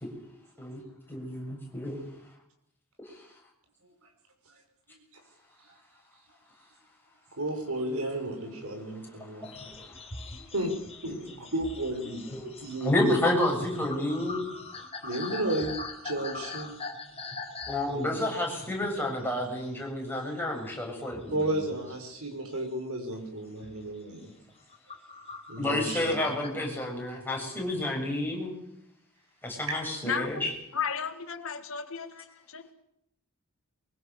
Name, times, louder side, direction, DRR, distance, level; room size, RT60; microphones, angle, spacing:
voice 1, 1.1-2.0 3.1-3.2 7.9-9.9 11.1-11.2 12.3-12.5 12.8-14.5 17.7-21.7 25.6-28.5 29.4-30.5, left 1 dB, 10° left, -1 dB, 7.3 m, -30 dB
voice 2, 7.4-9.5 10.5-10.7 11.0-12.2 12.6-13.2 15.0-15.8 16.0-16.8 17.9-18.1 21.3-24.3 25.5-26.2 29.7-29.8, right 1 dB, 70° right, 4 dB, 5.8 m, -33 dB
sound 1, 9.4-19.9 20.1-20.8 21.1-22.6 23.1-23.3 23.6-23.9 24.4-26.5, left 3 dB, 30° left, 4.0 m, -43 dB
voice 3, 30.0-30.5 30.7-32.7, left 6 dB, 65° left, 9 dB, 1.8 m, -34 dB
23.5 x 22.5 x 6.9 m, 0.76 s
head